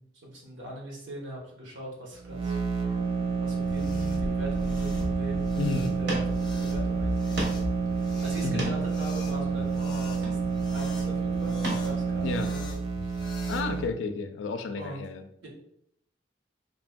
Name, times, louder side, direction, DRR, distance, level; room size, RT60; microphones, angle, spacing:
voice 1, 0.0-2.6 3.4-5.5 5.8-6.2 6.6-7.2 8.0-13.1 14.8-15.0 15.4-15.5, right 1 dB, 90° right, -2 dB, 0.9 m, -41 dB
sound 1, 2.2-13.9, right 5 dB, 30° right, 0.3 m, -29 dB
sound 2, 3.5-13.7, left 1 dB, 25° left, 0.5 m, -38 dB
voice 2, 5.6-6.0 8.4-8.8 12.2-12.5 13.5-15.3, left 4 dB, 85° left, 7 dB, 0.3 m, -32 dB
sound 3, 5.8-5.9 6.1-6.3 6.7-6.8 7.4-7.7 8.3-9.0 10.1-10.7 11.6-11.9 12.3-12.5, right 1 dB, 60° right, 0.7 m, -34 dB
3.1 x 2.5 x 2.2 m, 0.73 s
head